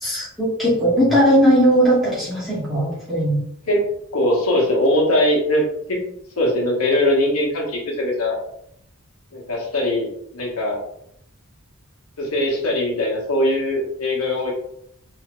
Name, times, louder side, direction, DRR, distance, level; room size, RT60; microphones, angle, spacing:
voice 1, 0.0-3.4, equal, ahead, -10 dB, 1.2 m, -18 dB
voice 2, 4.1-5.6 5.9-6.0 6.4-8.4 9.3-10.1 10.3-10.8 12.2-14.5, left 1 dB, 80° left, -2 dB, 1.2 m, -20 dB
3.4 x 2.8 x 3.1 m, 0.72 s
head